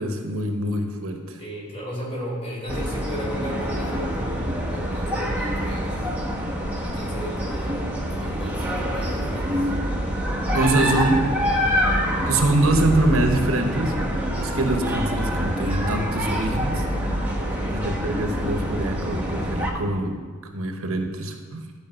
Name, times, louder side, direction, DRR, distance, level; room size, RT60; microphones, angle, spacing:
voice 1, 0.0-1.4 10.5-11.3 12.3-16.8 17.7-20.2 20.5-21.6, right 2 dB, 65° right, 4 dB, 1.1 m, -24 dB
voice 2, 1.4-6.0 6.8-9.7 17.3-17.9, equal, 25° left, -4 dB, 3.3 m, -35 dB
sound 1, 2.7-19.7, equal, 5° right, 1.3 m, -26 dB
12.5 x 5.0 x 7.8 m, 1.5 s
head